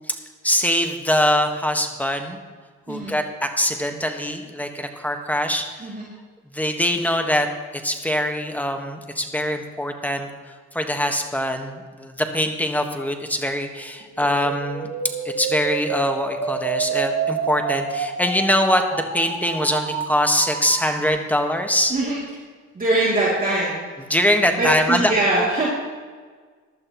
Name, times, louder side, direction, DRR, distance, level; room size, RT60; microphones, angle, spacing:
voice 1, 0.4-2.4 2.9-5.9 6.5-7.5 7.8-10.3 10.7-14.9 15.4-21.9 24.1-25.1, equal, 5° left, 5 dB, 1.4 m, -23 dB
sound 1, 14.1-21.1, right 6 dB, 75° right, 1.7 m, -28 dB
voice 2, 22.7-23.8 24.5-25.7, right 2 dB, 30° right, -6 dB, 2.8 m, -22 dB
15.0 x 11.5 x 3.0 m, 1.5 s
cardioid pair, 90°, 30 cm